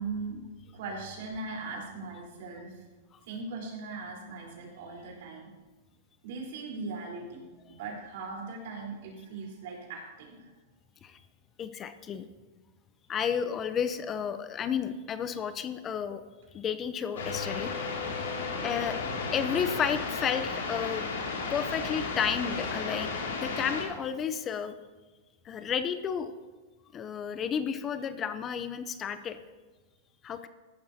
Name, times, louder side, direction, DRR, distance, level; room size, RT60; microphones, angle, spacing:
voice 1, 0.0-2.8 3.2-5.5 6.2-7.4 7.7-10.5, right 3 dB, 65° right, -1 dB, 3.9 m, -39 dB
voice 2, 11.6-12.3 13.1-16.2 16.5-17.9 18.6-19.0 19.3-21.1 21.5-24.7 25.4-26.3 26.9-29.4 30.2-30.5, left 7 dB, 25° left, 11 dB, 0.6 m, -32 dB
sound 1, 17.2-23.9, left 4 dB, 85° left, 2.5 m, -34 dB
15.0 x 11.5 x 2.8 m, 1.3 s
hypercardioid pair, 125°, 0 cm